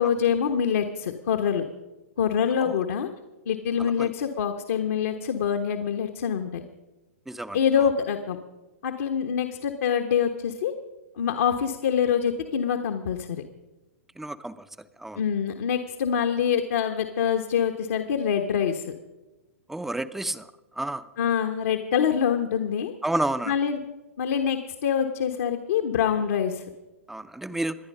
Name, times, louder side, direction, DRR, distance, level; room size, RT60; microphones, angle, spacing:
voice 1, 0.0-1.6 2.2-3.1 3.5-6.6 7.5-8.4 8.8-10.7 11.2-13.4 15.2-18.9 21.2-22.9 23.5-23.8 24.2-26.6, left 8 dB, 65° left, 4 dB, 1.2 m, -25 dB
voice 2, 3.8-4.1 7.3-7.6 14.2-14.6 15.0-15.2 19.7-20.5 20.8-21.0 23.0-23.5 27.1-27.8, right 1 dB, 5° right, 13 dB, 0.6 m, -30 dB
26.0 x 9.9 x 5.5 m, 1.1 s
hypercardioid pair, 115°, 8 cm